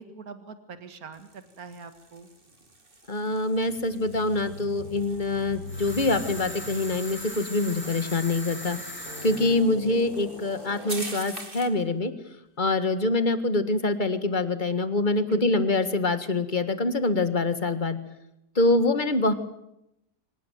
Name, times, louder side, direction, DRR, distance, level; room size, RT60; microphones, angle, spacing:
voice 1, 0.0-2.3 15.3-15.7, right 5 dB, 60° right, 10 dB, 2.4 m, -43 dB
sound 1, 1.1-11.8, right 2 dB, 30° right, 2.9 m, -45 dB
voice 2, 3.1-8.8 9.2-12.1 12.6-18.0 18.6-19.3, left 2 dB, 30° left, 11 dB, 1.9 m, -25 dB
sound 2, 3.6-8.4 9.0-11.2, equal, 60° left, 5.9 m, -42 dB
sound 3, 5.7-9.6, equal, 5° left, 4.9 m, -39 dB
25.0 x 18.5 x 9.4 m, 0.82 s
omnidirectional pair, 1.7 m